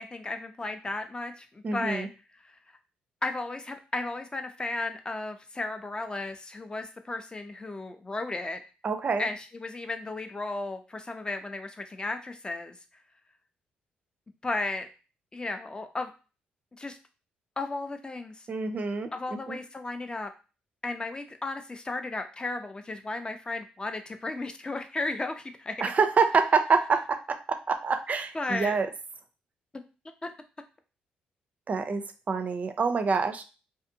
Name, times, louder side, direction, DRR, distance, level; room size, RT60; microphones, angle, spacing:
voice 1, 0.0-2.1 2.3-2.6 3.2-8.6 9.2-12.8 14.4-14.9 15.3-16.1 16.8-17.0 17.6-18.5 19.1-20.3 20.8-25.9 28.3-28.8 30.2-30.3, left 2 dB, 25° left, 7 dB, 0.5 m, -34 dB
voice 2, 1.6-2.1 8.8-9.3 18.5-19.1 19.5-19.6 25.8-28.9 31.7-33.4, right 5 dB, 45° right, 8 dB, 0.4 m, -26 dB
2.5 x 2.5 x 2.7 m, 0.32 s
supercardioid pair, 65°, 4 cm